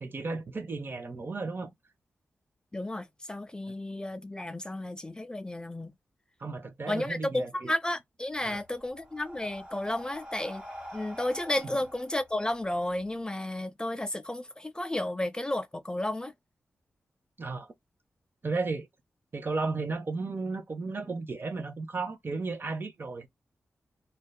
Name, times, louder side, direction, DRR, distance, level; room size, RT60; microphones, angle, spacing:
voice 1, 0.0-1.7 6.4-7.7 8.4-8.6 17.4-17.7 18.4-18.9 19.3-23.3, right 3 dB, 45° right, 0.7 m, -34 dB
voice 2, 2.7-5.9 6.9-10.6 10.9-16.3, left 1 dB, 15° left, 0.4 m, -32 dB
Breathing, 8.3-13.1, equal, 15° right, 1.3 m, -46 dB
2.6 x 2.2 x 2.2 m
cardioid pair, 60°, 5 cm